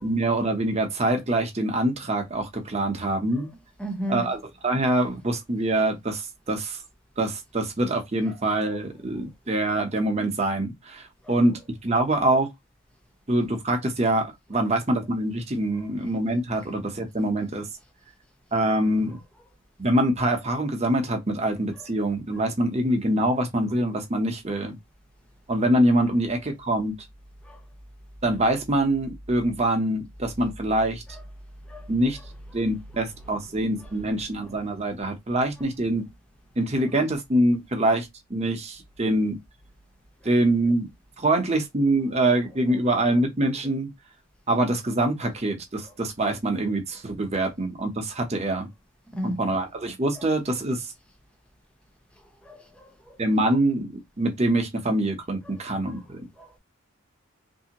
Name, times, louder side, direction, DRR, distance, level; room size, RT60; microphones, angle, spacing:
voice 1, 0.0-3.5 4.1-6.8 7.2-11.5 11.8-12.5 13.3-17.7 18.5-19.2 19.8-24.7 25.5-26.9 28.2-31.0 31.9-32.2 32.5-36.1 36.6-39.4 40.2-40.9 41.2-43.9 44.5-48.7 49.2-50.9 53.2-53.9 54.2-56.2, right 1 dB, 30° right, 0.8 m, -24 dB
voice 2, 3.8-4.2 27.5-27.6 31.7-31.8 49.1-49.4 52.4-53.2 56.4-56.5, equal, 5° left, 0.7 m, -33 dB
3.4 x 2.7 x 2.8 m
head